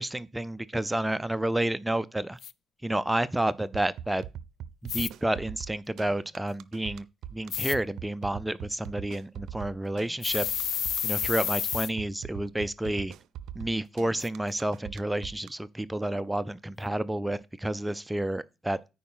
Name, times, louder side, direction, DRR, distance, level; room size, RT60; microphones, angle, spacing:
voice 1, 0.0-2.4 2.8-4.2 4.8-7.1 7.3-10.5 11.0-13.1 13.5-18.8, right 1 dB, 10° right, 0.5 m, -30 dB
sound 1, 2.4-2.5 4.9-5.1 7.5-7.7 10.2-11.9 14.2-14.3, left 9 dB, 65° left, 0.4 m, -30 dB
sound 2, 3.7-15.5, right 10 dB, 75° right, 0.5 m, -41 dB
9.3 x 4.8 x 5.5 m
cardioid pair, 90°, 0 cm